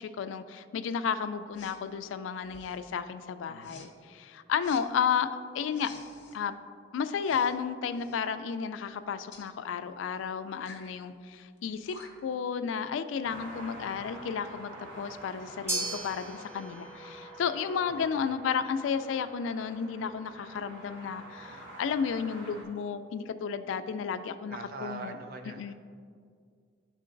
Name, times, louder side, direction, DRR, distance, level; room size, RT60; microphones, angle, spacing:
voice 1, 0.0-5.9 6.3-6.6 6.9-11.9 12.2-25.2 25.6-25.7, left 6 dB, 80° left, 11 dB, 0.3 m, -32 dB
Respiratory sounds, 1.5-1.8 2.4-2.9 3.6-3.9 4.6-4.8 5.7-6.4 7.2-7.6 7.9-8.2 9.3-9.5 10.6-10.9 11.6-11.7 11.9-12.3, left 4 dB, 60° left, 0.8 m, -50 dB
voice 2, 3.5-3.9 17.9-18.3 24.5-25.7, right 3 dB, 50° right, 5 dB, 0.5 m, -43 dB
sound 1, 13.2-22.6, right 1 dB, 80° right, 1.3 m, -48 dB
sound 2, 15.7-24.1, right 2 dB, 15° right, 0.9 m, -42 dB
11.0 x 3.7 x 2.5 m, 2.2 s
head